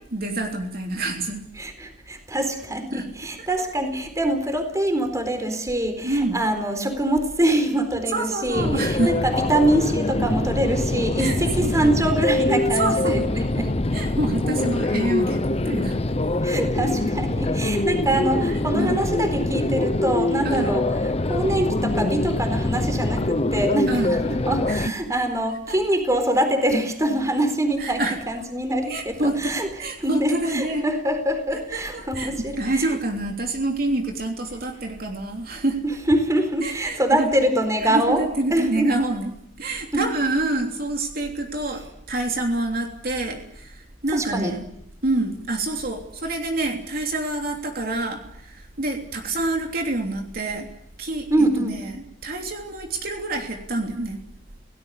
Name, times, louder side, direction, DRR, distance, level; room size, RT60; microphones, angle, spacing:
voice 1, 0.1-1.4 2.9-3.1 3.4-3.5 6.0-6.4 8.1-9.1 11.2-11.4 11.6-12.0 12.8-16.0 16.5-16.6 18.5-19.0 20.4-20.7 23.9-24.1 24.7-24.9 25.7-25.8 27.8-28.2 28.9-30.8 31.5-35.8 36.6-37.3 37.8-39.3 39.6-44.6 45.0-50.7 51.0-51.3 51.6-54.2, right 2 dB, 55° right, 3 dB, 3.2 m, -27 dB
voice 2, 1.6-13.7 16.4-20.8 21.3-29.7 30.0-32.9 35.8-38.2 38.5-38.9 39.9-40.0 44.1-44.5 51.3-51.7, right 1 dB, 20° right, 7 dB, 4.1 m, -24 dB
sound 1, 8.5-24.9, left 2 dB, 35° left, 0.8 m, -24 dB
28.5 x 18.0 x 8.3 m, 0.75 s
head